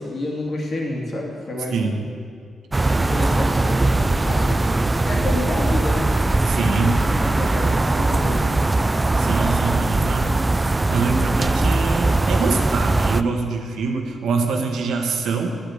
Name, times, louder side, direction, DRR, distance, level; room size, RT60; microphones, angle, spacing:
voice 1, 0.0-1.9 2.9-4.7 5.0-6.2 6.8-8.7, left 2 dB, 45° left, -1 dB, 2.7 m, -29 dB
voice 2, 1.7-2.1 6.5-7.0 9.2-10.4 10.7-15.6, right 4 dB, 90° right, 4 dB, 1.4 m, -24 dB
sound 1, 2.7-13.2, right 2 dB, 20° right, 0.4 m, -20 dB
10.5 x 8.5 x 8.0 m, 2.2 s
cardioid pair, 120°, 0 cm